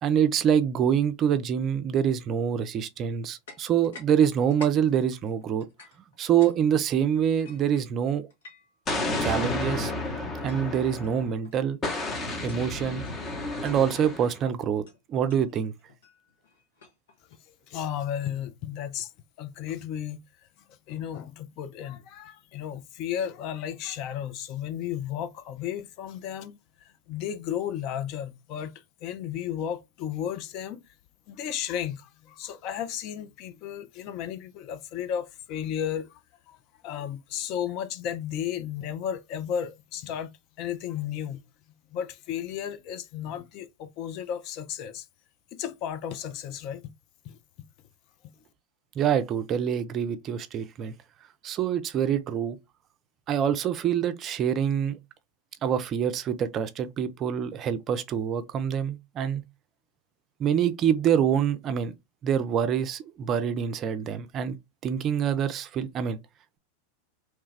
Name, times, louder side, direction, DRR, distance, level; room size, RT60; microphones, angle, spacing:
voice 1, 0.0-5.7 6.2-8.3 9.2-9.9 10.4-11.8 12.4-13.0 13.6-14.8 15.1-15.7 49.0-50.9 51.4-52.6 53.3-55.0 55.6-59.4 60.4-61.9 62.2-64.6 64.8-66.2, right 8 dB, 35° right, 0.4 m, -25 dB
sound 1, 3.5-4.1 4.4-6.6 6.8-8.8 9.4-9.7 10.5-10.6 10.9-11.1 11.4-11.7 12.3-12.7 13.0-13.2 13.6-14.1 14.9-17.4, left 4 dB, 70° left, 1.0 m, -51 dB
Explosion, 8.9-11.3 11.8-14.4, left 2 dB, 25° left, 0.9 m, -31 dB
voice 2, 17.7-19.1 19.4-20.2 20.9-30.8 31.3-36.2 36.5-36.6 36.8-40.3 40.6-41.4 41.9-45.1 45.5-46.8 47.2-47.4, left 9 dB, 45° left, 0.5 m, -34 dB
3.0 x 2.3 x 3.2 m
figure-of-eight pair, 90°, 0 cm